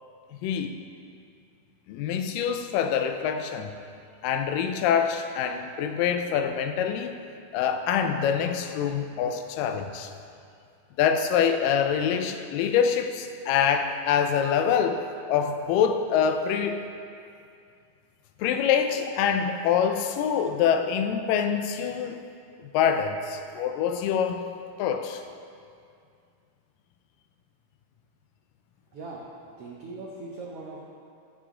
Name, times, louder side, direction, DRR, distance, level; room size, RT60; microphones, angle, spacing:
voice 1, 0.4-0.8 1.9-3.7 4.2-7.1 7.5-10.1 11.0-16.8 18.4-22.2 22.6-24.5 24.8-25.2, left 7 dB, 85° left, 7 dB, 2.2 m, -25 dB
voice 2, 28.9-29.2 29.6-30.8, right 3 dB, 90° right, -3 dB, 1.3 m, -39 dB
14.5 x 6.8 x 3.7 m, 2.4 s
omnidirectional pair, 3.9 m